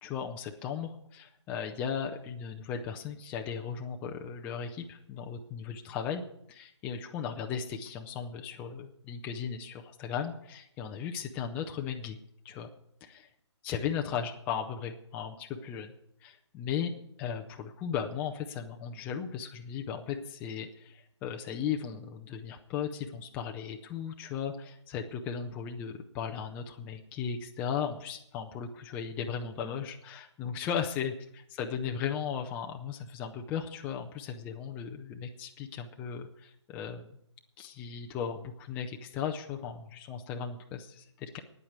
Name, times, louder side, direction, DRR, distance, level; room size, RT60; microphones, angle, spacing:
voice 1, 0.0-6.2 6.5-12.2 12.4-12.7 13.0-13.3 13.6-15.9 16.2-37.2 37.6-41.4, left 7 dB, 10° left, 3 dB, 0.5 m, -36 dB
9.6 x 8.5 x 8.8 m, 0.74 s
figure-of-eight pair, 145°, 15 cm